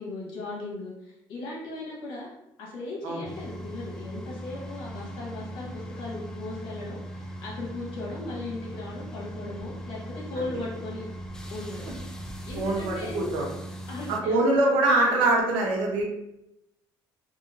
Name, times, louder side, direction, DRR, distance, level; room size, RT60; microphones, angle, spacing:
voice 1, 0.0-2.3 2.6-11.0 11.5-11.9 12.5-13.2 13.9-15.2, left 2 dB, 75° left, -4 dB, 1.3 m, -37 dB
sound 1, 3.2-14.2, right 1 dB, 5° left, 0.4 m, -39 dB
voice 2, 12.5-13.5 14.1-16.0, right 2 dB, 85° right, -1 dB, 0.9 m, -23 dB
3.0 x 2.6 x 2.7 m, 0.83 s
cardioid pair, 95°, 8 cm